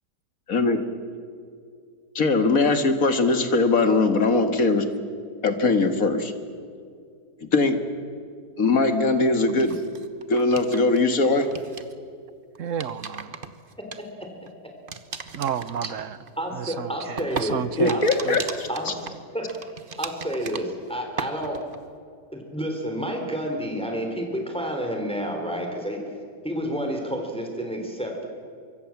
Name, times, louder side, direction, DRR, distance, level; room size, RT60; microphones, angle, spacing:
voice 1, 2.2-4.9 5.4-6.3 7.4-7.8 8.6-9.8 10.3-11.5 17.8-18.9, left 3 dB, 55° left, 7 dB, 2.2 m, -21 dB
sound 1, 9.5-11.0 11.2-11.9 12.6-14.5 14.9-20.9 21.2-21.8, right 5 dB, 35° right, 1.2 m, -37 dB
voice 2, 12.6-13.4 15.3-16.2 16.5-18.5, right 8 dB, 55° right, 15 dB, 1.1 m, -31 dB
voice 3, 13.8-14.5 15.8-15.9 16.4-17.6 17.9-18.0 18.7-19.5 20.0-21.6 22.3-26.0 26.4-28.3, equal, 5° left, 2 dB, 3.5 m, -30 dB
25.0 x 23.0 x 7.3 m, 2.3 s
omnidirectional pair, 1.8 m